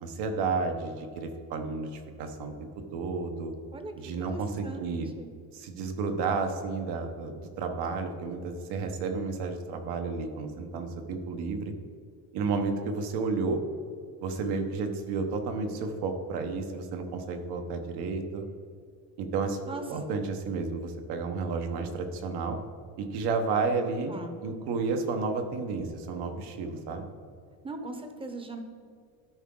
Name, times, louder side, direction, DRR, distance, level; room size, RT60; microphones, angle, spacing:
voice 1, 0.0-3.5 4.0-5.1 5.5-11.7 12.3-13.6 14.2-18.4 19.2-22.6 23.0-24.1 24.4-27.1, right 4 dB, 85° right, 5 dB, 1.1 m, -32 dB
voice 2, 4.2-5.3 19.7-19.8 24.1-24.4 27.6-28.6, right 2 dB, 15° right, 6 dB, 0.7 m, -40 dB
12.5 x 4.8 x 3.8 m, 2.2 s
cardioid pair, 155°, 38 cm